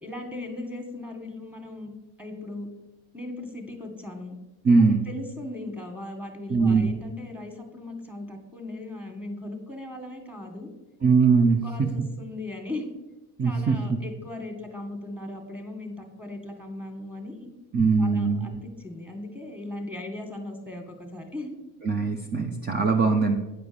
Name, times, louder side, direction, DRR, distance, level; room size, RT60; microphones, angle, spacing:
voice 1, 0.0-1.9 2.2-2.7 3.1-4.4 4.7-10.7 11.3-12.9 13.4-17.5 18.0-21.6, left 2 dB, 5° right, 4 dB, 1.9 m, -38 dB
voice 2, 4.6-5.0 6.5-6.9 11.0-11.9 13.4-14.0 17.7-18.5 21.8-23.4, right 4 dB, 25° right, 3 dB, 0.9 m, -21 dB
9.7 x 4.7 x 7.0 m, 1.0 s
supercardioid pair, 105°, 39 cm